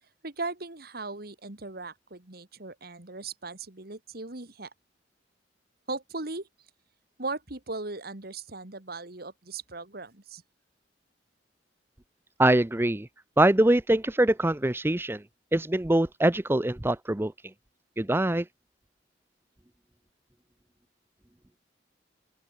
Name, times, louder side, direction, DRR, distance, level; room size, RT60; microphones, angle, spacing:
voice 1, 0.2-4.7 5.9-6.5 7.2-10.4, right 3 dB, 55° right, 2.3 m, -38 dB
voice 2, 12.4-13.1 13.4-15.2 15.5-17.3 18.0-18.4, right 1 dB, 15° right, 0.7 m, -23 dB
open air
head